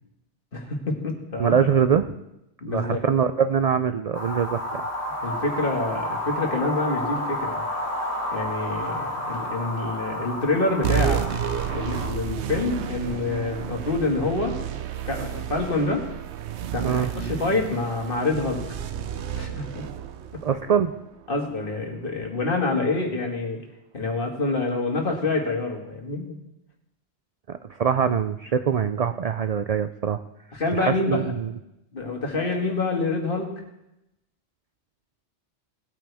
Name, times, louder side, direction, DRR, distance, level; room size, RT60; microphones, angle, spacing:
voice 1, 0.5-1.6 2.6-3.0 5.2-7.6 8.3-11.3 11.7-16.0 16.7-18.6 19.3-19.8 21.3-23.6 23.9-26.4 30.5-31.3 31.9-33.5, left 3 dB, 50° left, 0 dB, 2.1 m, -27 dB
voice 2, 1.4-2.1 2.7-4.9 16.8-17.1 20.4-20.9 27.5-30.2 30.8-31.5, right 7 dB, 60° right, 10 dB, 0.4 m, -23 dB
sound 1, 4.1-12.1, left 1 dB, 15° left, 2.9 m, -31 dB
sound 2, 10.8-21.7, right 9 dB, 80° right, 1.0 m, -31 dB
18.5 x 8.9 x 3.5 m, 0.88 s
omnidirectional pair, 1.1 m